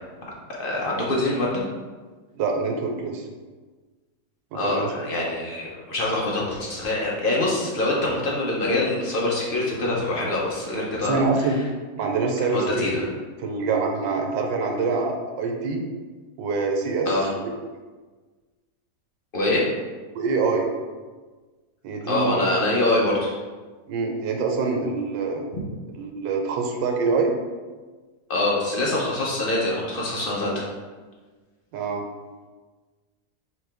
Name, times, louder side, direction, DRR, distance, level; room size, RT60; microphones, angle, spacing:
voice 1, 0.5-1.6 4.5-11.5 12.5-13.0 17.1-17.3 19.3-19.6 22.1-23.3 25.5-25.6 28.3-30.7, left 2 dB, 70° left, -4 dB, 0.5 m, -24 dB
voice 2, 2.3-3.3 4.5-4.9 11.0-11.6 12.0-12.9 13.4-15.8 16.4-17.1 17.3-17.5 20.1-20.7 21.8-22.5 23.9-25.4 26.0-27.3 31.7-32.1, right 4 dB, 90° right, 3 dB, 1.3 m, -25 dB
5.0 x 3.0 x 3.3 m, 1.4 s
omnidirectional pair, 1.9 m